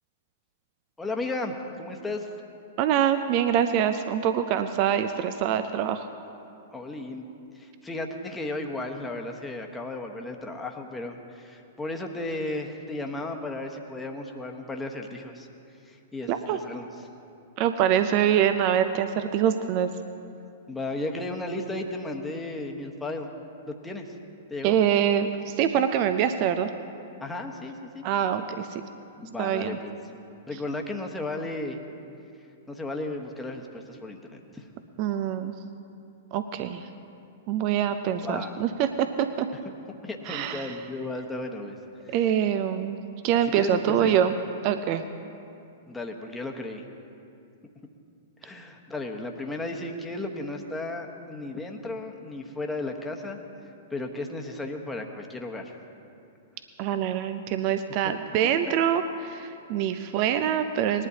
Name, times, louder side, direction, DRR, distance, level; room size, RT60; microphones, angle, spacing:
voice 1, 1.0-2.3 6.7-7.3 7.6-15.5 15.9-17.1 20.7-23.3 23.7-24.1 24.5-24.8 27.2-28.0 29.2-29.9 30.5-31.8 32.7-34.6 38.2-38.6 40.0-41.8 42.1-42.2 43.5-44.2 45.9-46.8 48.4-53.4 53.9-55.7, left 2 dB, 10° left, 2 dB, 1.2 m, -34 dB
voice 2, 2.8-6.0 16.3-16.6 17.6-19.9 24.6-26.7 28.0-28.8 29.4-29.8 35.0-35.5 36.3-36.8 37.5-39.5 40.3-40.7 42.1-43.0 43.2-44.3 44.6-45.0 56.8-61.1, right 9 dB, 40° right, 9 dB, 0.5 m, -25 dB
20.5 x 11.0 x 2.8 m, 2.6 s
figure-of-eight pair, 105°, 0 cm